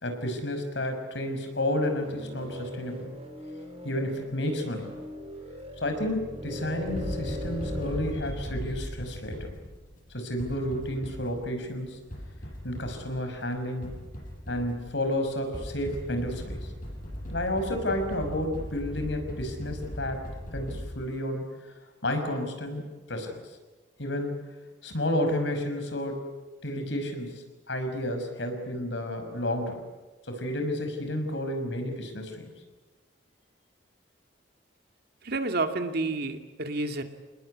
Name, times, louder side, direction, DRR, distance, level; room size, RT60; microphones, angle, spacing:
voice 1, 0.0-3.1 3.8-4.9 5.8-9.5 10.1-12.0 12.6-14.0 14.5-16.7 17.3-20.2 20.5-21.4 22.0-23.4 24.0-24.4 24.8-26.2 26.6-29.8 30.3-32.5, left 1 dB, 75° left, 6 dB, 5.8 m, -31 dB
sound 1, 1.8-8.0, left 1 dB, 35° right, 3.7 m, -39 dB
sound 2, 6.9-20.9, equal, 50° left, 8.0 m, -38 dB
voice 2, 35.2-37.0, right 2 dB, 60° right, 6 dB, 2.4 m, -29 dB
28.0 x 20.5 x 9.8 m, 1.2 s
head